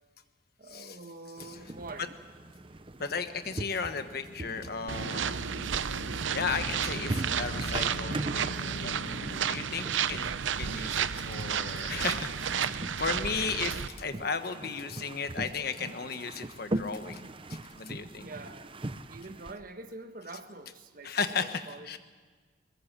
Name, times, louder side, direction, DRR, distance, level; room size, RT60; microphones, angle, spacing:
voice 1, 0.6-2.1 18.2-18.8 19.1-22.0, right 2 dB, 50° right, 8 dB, 1.4 m, -45 dB
sound 1, 1.4-19.5, right 1 dB, 30° right, 0.7 m, -41 dB
voice 2, 3.0-5.4 6.3-8.9 9.4-17.2 17.5-18.3 21.0-22.0, left 5 dB, 55° left, 9 dB, 1.3 m, -35 dB
sound 2, 3.9-10.6, left 1 dB, 85° left, 1.9 m, -44 dB
sound 3, 4.9-13.9, right 7 dB, 85° right, 0.7 m, -32 dB
22.0 x 21.5 x 7.4 m, 1.5 s
head